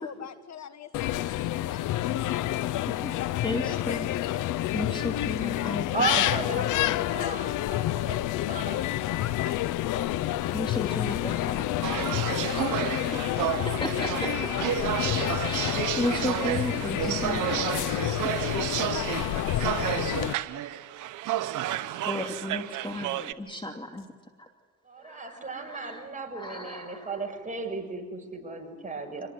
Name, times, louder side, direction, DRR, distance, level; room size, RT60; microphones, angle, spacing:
voice 1, 0.0-2.8 3.8-4.4 4.9-5.8 6.6-8.7 9.2-14.2 18.4-20.7 23.0-23.3, left 8 dB, 60° left, 10 dB, 1.6 m, -42 dB
sound 1, 0.9-20.3, left 14 dB, 85° left, 0.8 m, -29 dB
voice 2, 3.4-4.1 4.7-5.9 6.2-6.7 10.5-11.6 13.8-14.3 14.8-14.9 15.4-18.3 19.1-19.2 22.0-24.1 24.4-24.5 25.0-26.0 26.3-27.1, left 1 dB, 15° left, 3 dB, 2.7 m, -34 dB
voice 3, 5.9-6.7 7.0-7.8 8.1-8.8 24.8-29.3, right 3 dB, 25° right, 3 dB, 6.4 m, -35 dB
sound 2, 11.8-23.3, right 13 dB, 85° right, 1.1 m, -31 dB
26.5 x 20.0 x 9.7 m, 1.3 s
cardioid pair, 90°, 30 cm